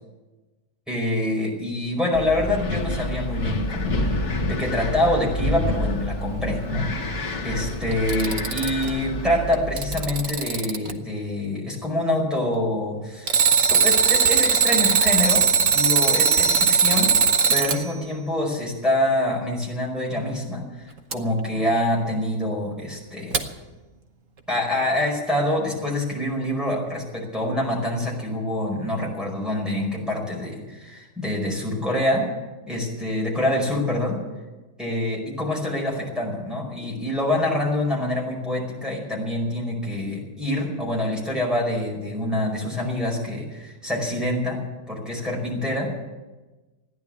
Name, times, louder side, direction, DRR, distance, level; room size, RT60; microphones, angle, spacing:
voice 1, 0.9-4.0 4.5-6.9 7.4-17.1 17.5-23.4 24.5-32.3 32.7-34.2 34.8-44.6 44.9-45.9, left 1 dB, ahead, -4 dB, 4.9 m, -26 dB
Wind, 2.1-10.3, left 1 dB, 50° left, 1.8 m, -28 dB
Alarm, 7.9-8.9 9.5-10.9 13.3-17.8 21.1-21.2 23.3-23.4, right 6 dB, 60° right, 1.4 m, -19 dB
15.0 x 10.5 x 8.7 m, 1.2 s
omnidirectional pair, 1.6 m